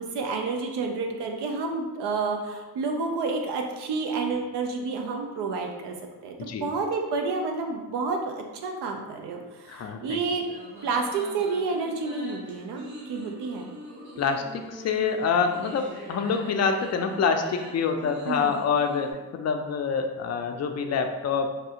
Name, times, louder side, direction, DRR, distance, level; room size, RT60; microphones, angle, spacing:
voice 1, 0.0-5.9 6.2-6.3 6.6-10.4 10.8-13.7 18.3-18.6, right 4 dB, 75° right, 2 dB, 0.6 m, -29 dB
voice 2, 9.7-10.2 14.2-21.5, left 5 dB, 40° left, 5 dB, 0.4 m, -26 dB
sound 1, 10.3-19.1, right 1 dB, 45° right, 1.4 m, -43 dB
3.3 x 2.3 x 2.8 m, 1.2 s
supercardioid pair, 55°, 41 cm